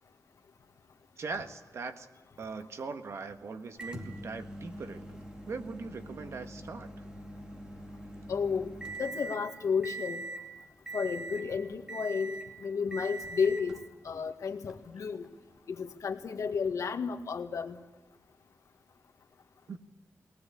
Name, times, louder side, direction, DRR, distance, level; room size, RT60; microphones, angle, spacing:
voice 1, 1.2-2.1 2.4-5.2 5.5-7.0 19.7-19.8, right 4 dB, 60° right, 8 dB, 1.6 m, -40 dB
Microwave oven, 3.8-9.4 9.8-10.5 10.9-11.5 11.9-12.5 12.9-13.7 14.7-14.8 16.8-16.9, right 2 dB, 15° right, 2.7 m, -42 dB
voice 2, 8.3-8.7 9.0-10.2 10.9-13.8 14.0-15.3 15.7-17.8, left 6 dB, 80° left, 4 dB, 1.9 m, -32 dB
21.5 x 19.0 x 8.6 m, 1.1 s
wide cardioid pair, 160°, 5 cm